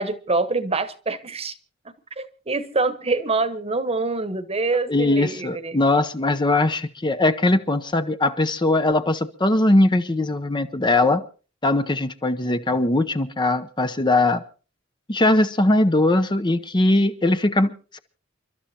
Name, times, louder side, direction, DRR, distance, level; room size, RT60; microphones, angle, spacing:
voice 1, 0.0-1.5 2.2-5.8, right 3 dB, 30° right, 1.2 m, -25 dB
voice 2, 4.9-11.2 11.6-14.4 15.1-18.0, left 2 dB, 25° left, 0.8 m, -20 dB
29.0 x 12.5 x 2.9 m
head